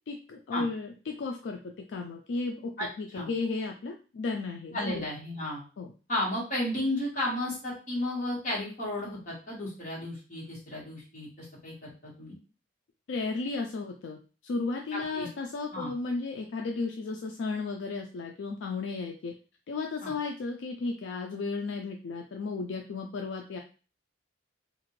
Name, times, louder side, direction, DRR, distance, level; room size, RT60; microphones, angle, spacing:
voice 1, 0.1-2.7 3.0-5.1 5.8-5.9 13.1-19.3 19.7-23.6, left 3 dB, 70° left, 2 dB, 0.4 m, -34 dB
voice 2, 2.8-3.3 4.7-5.6 6.1-12.3 14.9-15.3 15.7-15.9 20.0-20.1, left 1 dB, 40° left, -5 dB, 1.3 m, -33 dB
2.8 x 2.5 x 3.0 m, 0.35 s
head